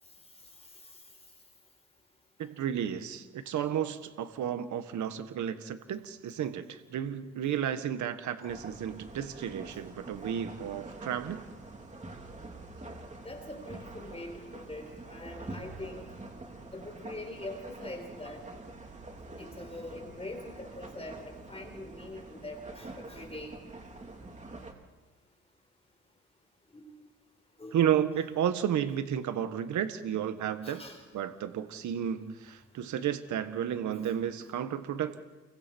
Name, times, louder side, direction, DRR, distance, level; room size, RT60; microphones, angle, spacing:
voice 1, 2.4-11.4 27.7-30.8 31.1-35.2, right 9 dB, 70° right, 9 dB, 1.6 m, -32 dB
sound 1, 8.5-24.7, right 2 dB, 25° right, 3.7 m, -46 dB
voice 2, 13.2-16.1 16.7-18.4 19.4-23.5 26.7-26.9 27.6-27.8 30.6-31.0, left 1 dB, 20° left, 4 dB, 4.5 m, -43 dB
29.5 x 23.5 x 4.6 m, 1.2 s
cardioid pair, 90°, 30 cm